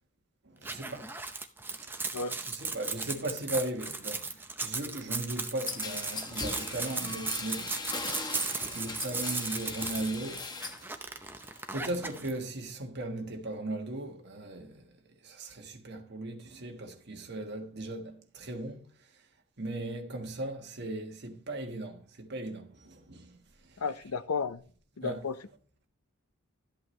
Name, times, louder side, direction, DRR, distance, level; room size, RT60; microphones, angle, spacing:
voice 1, 0.4-1.1 1.8-2.1 2.5-7.7 8.7-10.4 10.8-10.9 11.7-14.8 15.2-18.9 19.6-23.4 23.7-23.8 25.0-25.3, right 1 dB, 50° right, 1.4 m, -37 dB
sound 1, 0.6-12.3, right 3 dB, 10° right, 0.7 m, -36 dB
sound 2, 5.7-10.9 11.2-11.8, left 3 dB, 20° left, 0.9 m, -39 dB
voice 2, 23.8-24.6 25.0-25.4, left 5 dB, 85° left, 0.6 m, -33 dB
13.0 x 8.3 x 3.2 m
head